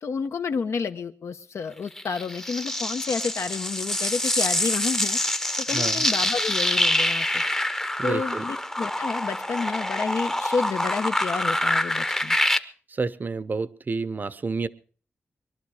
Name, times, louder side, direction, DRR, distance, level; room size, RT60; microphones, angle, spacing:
voice 1, 0.0-5.2 5.7-7.4 8.0-12.4, left 5 dB, 85° left, 9 dB, 1.0 m, -30 dB
sound 1, 2.0-12.6, left 1 dB, 10° left, 0.7 m, -26 dB
voice 2, 5.7-6.1 8.0-8.4 12.9-14.7, right 4 dB, 40° right, 17 dB, 0.6 m, -29 dB
22.5 x 12.0 x 4.9 m, 0.43 s
wide cardioid pair, 125°, 5 cm